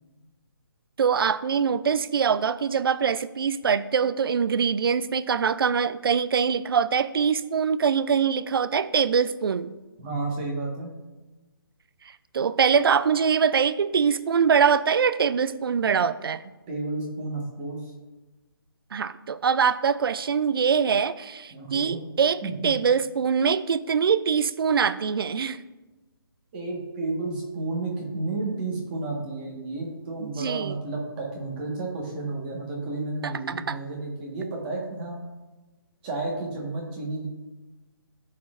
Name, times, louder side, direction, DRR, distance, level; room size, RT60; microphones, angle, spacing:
voice 1, 1.0-9.7 12.3-16.4 18.9-25.6 30.2-30.7 33.2-33.8, right 6 dB, 65° right, 14 dB, 0.4 m, -23 dB
voice 2, 10.0-10.9 16.7-17.9 21.5-22.0 22.4-22.7 26.5-35.2 36.0-37.3, right 3 dB, 25° right, -2 dB, 1.4 m, -32 dB
12.5 x 4.3 x 2.5 m, 1.1 s
hypercardioid pair, 160°, 13 cm